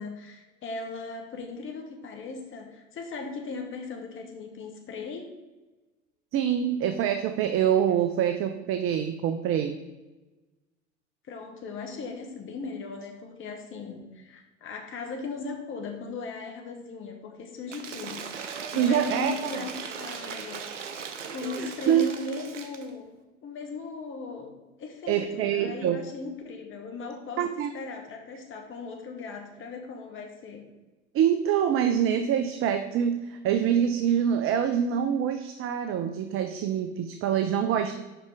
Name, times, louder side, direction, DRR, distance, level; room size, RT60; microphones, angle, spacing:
voice 1, 0.0-5.3 11.3-20.7 21.3-23.1 23.4-24.5 24.8-27.5 27.7-30.7, left 4 dB, 35° left, 3 dB, 1.3 m, -38 dB
voice 2, 6.3-9.8 18.7-19.7 21.6-22.1 25.1-26.0 27.4-27.7 31.1-37.9, right 9 dB, 40° right, 8 dB, 0.6 m, -25 dB
Cheering / Applause / Crowd, 17.7-22.9, right 6 dB, 85° right, 0.7 m, -38 dB
6.0 x 5.6 x 4.8 m, 1.2 s
hypercardioid pair, 75°, 36 cm